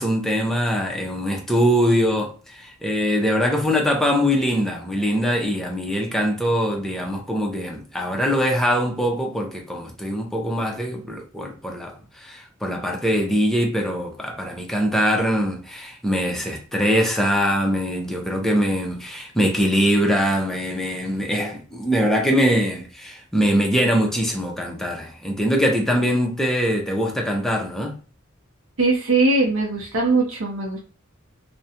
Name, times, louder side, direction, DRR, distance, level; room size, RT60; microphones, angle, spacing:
voice 1, 0.0-27.9, equal, ahead, 0.5 m, -22 dB
voice 2, 28.8-30.8, right 3 dB, 80° right, 0.6 m, -20 dB
2.4 x 2.1 x 2.7 m
head